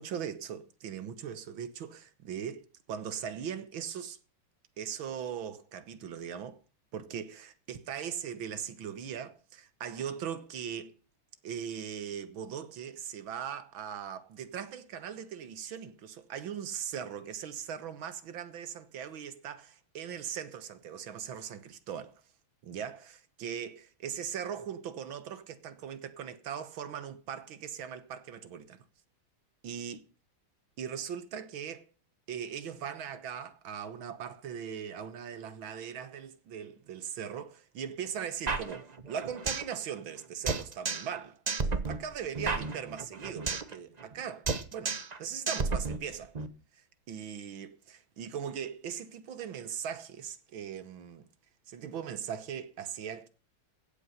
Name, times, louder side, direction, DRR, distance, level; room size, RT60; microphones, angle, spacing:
voice 1, 0.0-4.2 4.8-6.6 6.9-10.9 11.4-22.2 22.6-28.8 29.6-30.0 30.8-31.9 32.3-41.4 41.9-46.3 47.1-51.2 51.7-53.3, right 8 dB, 70° right, 1.9 m, -39 dB
sound 1, 38.5-39.7 40.0-40.1 40.5-41.2 41.5-43.7 44.0-44.2 44.5-45.2 45.5-46.5, right 4 dB, 40° right, 0.5 m, -32 dB
15.5 x 8.6 x 5.6 m
omnidirectional pair, 2.3 m